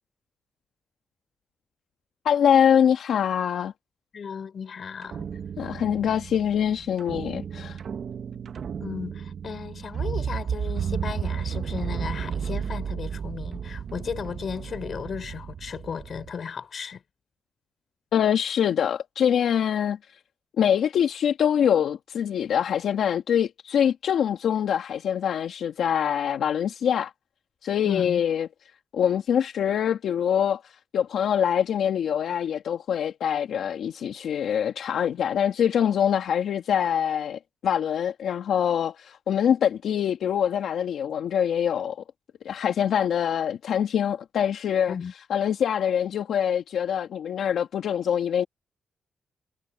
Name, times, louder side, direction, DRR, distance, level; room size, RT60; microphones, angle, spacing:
voice 1, 2.2-3.7 5.6-7.8 18.1-20.0 20.6-27.1 27.6-28.5 28.9-42.0 42.4-44.9 45.3-48.5, left 8 dB, 80° left, 1.6 m, -24 dB
voice 2, 4.1-5.3 8.8-17.0 27.8-28.2 44.9-45.1, left 6 dB, 60° left, 3.7 m, -35 dB
sound 1, 5.0-16.3, right 7 dB, 70° right, 1.4 m, -33 dB
cardioid pair, 65°, 0 cm